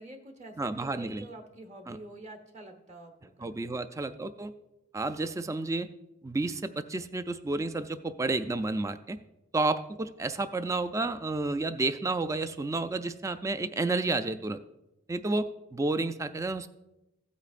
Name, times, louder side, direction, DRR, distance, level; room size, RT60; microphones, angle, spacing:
voice 1, 0.0-3.6, right 1 dB, 35° right, 4 dB, 1.2 m, -47 dB
voice 2, 0.6-1.3 1.9-2.0 3.4-4.5 4.9-5.9 6.2-9.2 9.5-14.6 15.1-16.7, right 2 dB, 15° right, 11 dB, 0.3 m, -31 dB
15.5 x 8.3 x 2.5 m, 0.94 s
head